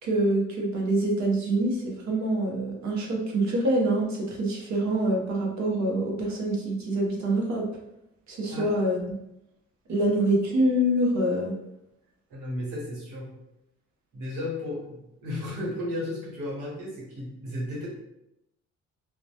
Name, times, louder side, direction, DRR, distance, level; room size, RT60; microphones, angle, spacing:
voice 1, 0.0-7.6 8.3-9.0 9.9-11.5, right 1 dB, 65° right, -1 dB, 0.8 m, -25 dB
voice 2, 12.3-13.3 14.1-17.9, left 1 dB, 85° right, -4 dB, 1.1 m, -34 dB
2.1 x 2.1 x 2.7 m, 0.85 s
cardioid pair, 90°, 30 cm